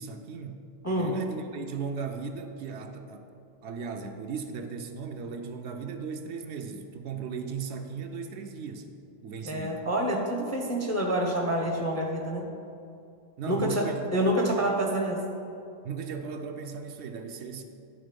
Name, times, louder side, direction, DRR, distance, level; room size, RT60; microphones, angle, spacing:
voice 1, 0.0-0.7 1.0-3.3 3.6-8.9 9.2-9.8 13.4-14.1 15.8-17.6, right 5 dB, 70° right, 5 dB, 0.8 m, -37 dB
voice 2, 9.4-12.5 13.5-13.8 14.1-15.2, right 1 dB, 20° left, 0 dB, 0.5 m, -27 dB
10.5 x 3.7 x 5.1 m, 2.6 s
omnidirectional pair, 1.2 m